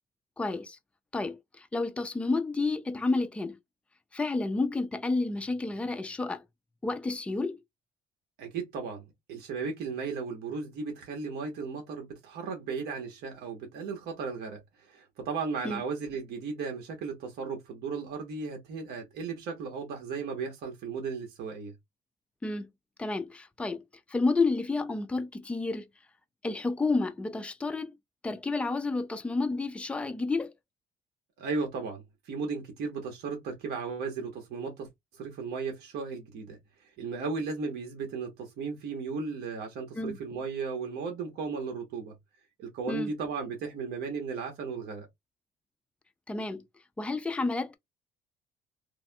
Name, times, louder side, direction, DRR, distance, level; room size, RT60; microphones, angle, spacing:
voice 1, 0.4-0.8 1.1-3.6 4.1-6.4 6.8-7.6 15.6-15.8 22.4-22.7 23.0-23.8 24.1-25.9 26.4-27.9 28.2-30.5 39.9-40.2 42.9-43.1 46.3-46.6 47.0-47.8, left 3 dB, 5° left, 0.4 m, -30 dB
voice 2, 8.4-21.7 31.4-34.9 35.1-36.6 37.0-42.1 42.6-45.1, right 5 dB, 70° right, 1.0 m, -35 dB
3.3 x 2.5 x 2.2 m
cardioid pair, 110°, 17 cm